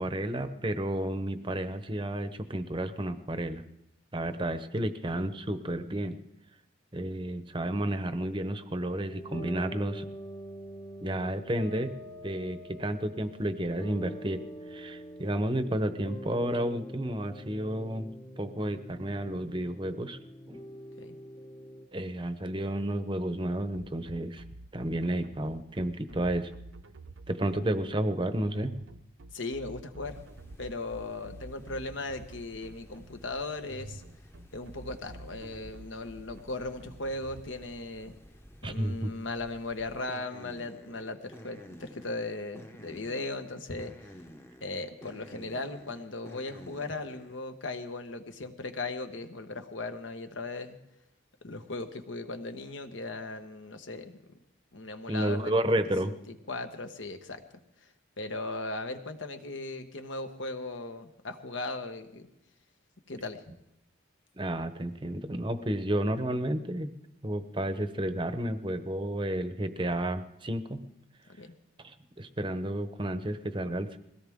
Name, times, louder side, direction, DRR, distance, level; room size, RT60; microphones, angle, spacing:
voice 1, 0.0-3.6 4.1-6.2 6.9-10.1 11.0-11.9 12.2-14.4 14.7-20.2 20.5-20.7 21.9-24.4 24.7-26.5 27.3-28.7 38.6-39.1 55.1-56.1 64.4-66.9 67.2-70.8 71.8-74.0, right 1 dB, 25° right, 10 dB, 0.8 m, -31 dB
sound 1, 9.1-21.9, equal, 30° left, 1.1 m, -45 dB
sound 2, 23.7-37.4, right 2 dB, 80° right, 0.8 m, -48 dB
voice 2, 29.3-30.2 30.6-34.0 34.5-38.1 38.6-44.1 44.6-50.8 51.4-54.2 54.7-57.4 58.2-62.3 63.1-63.4 71.3-71.5, left 2 dB, 70° left, 7 dB, 1.3 m, -38 dB
sound 3, 30.0-47.4, equal, 10° left, 0.8 m, -52 dB
21.5 x 17.0 x 3.6 m, 0.84 s
head